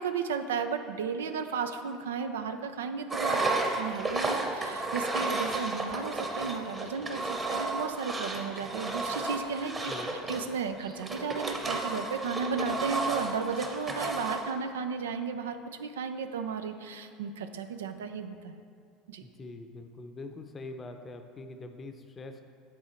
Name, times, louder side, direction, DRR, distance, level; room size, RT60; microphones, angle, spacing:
voice 1, 0.0-3.4 3.8-9.7 10.3-18.6 19.1-19.2, right 5 dB, 85° right, 8 dB, 0.4 m, -34 dB
Engine, 3.1-14.5, right 2 dB, 25° right, 1.0 m, -32 dB
voice 2, 19.2-22.4, left 2 dB, 30° left, 6 dB, 0.7 m, -43 dB
9.4 x 3.7 x 4.4 m, 2.3 s
hypercardioid pair, 80°, 0 cm